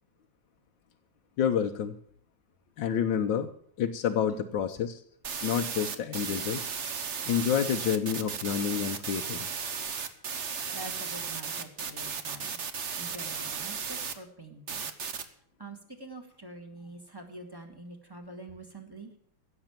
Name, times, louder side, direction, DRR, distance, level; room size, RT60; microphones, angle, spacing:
voice 1, 1.4-2.0 2.8-3.5 3.8-5.0 5.4-6.6 7.2-9.5, left 8 dB, 65° left, 4 dB, 1.5 m, -28 dB
sound 1, 5.2-14.1 14.7-15.2, right 6 dB, 45° right, 1.0 m, -35 dB
voice 2, 10.7-12.6 13.0-14.9 15.6-19.2, right 2 dB, 10° right, 5 dB, 1.7 m, -46 dB
16.5 x 6.9 x 8.9 m, 0.63 s
omnidirectional pair, 2.3 m